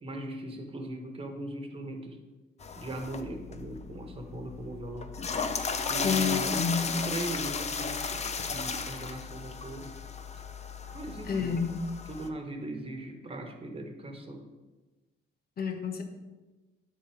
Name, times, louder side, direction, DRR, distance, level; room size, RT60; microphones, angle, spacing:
voice 1, 0.0-2.2 2.8-5.1 5.9-10.0 10.9-11.7 12.0-14.5, right 1 dB, 30° right, 4 dB, 1.3 m, -39 dB
sound 1, 2.6-12.3, left 5 dB, 35° left, 0.7 m, -35 dB
voice 2, 6.0-6.9 11.3-11.8 15.6-16.0, left 6 dB, 50° left, 5 dB, 1.2 m, -29 dB
10.0 x 4.1 x 5.0 m, 1.2 s
cardioid pair, 90°, 20 cm